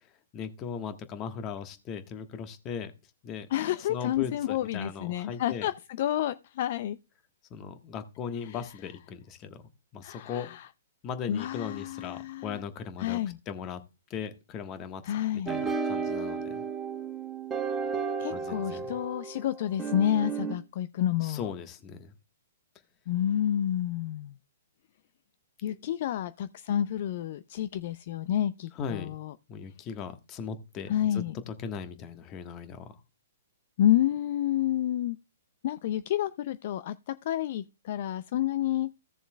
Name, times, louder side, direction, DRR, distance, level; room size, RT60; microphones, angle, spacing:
voice 1, 0.3-2.9 3.2-3.5 3.9-5.7 7.5-9.6 9.9-10.5 11.0-13.2 13.5-13.8 14.1-16.6 18.3-19.0 21.2-22.1 25.7-25.8 28.7-29.1 29.5-32.9, left 7 dB, 30° left, 1.3 m, -38 dB
voice 2, 3.5-5.7 6.0-7.0 8.4-8.6 10.0-10.7 11.3-12.6 13.0-13.4 15.0-15.6 18.2-21.5 23.1-24.3 25.6-29.3 30.9-31.3 33.8-35.2 35.6-38.9, left 11 dB, 50° left, 0.4 m, -29 dB
sound 1, 15.5-20.5, right 5 dB, 15° right, 1.8 m, -33 dB
16.0 x 7.0 x 2.2 m
figure-of-eight pair, 120°, 0 cm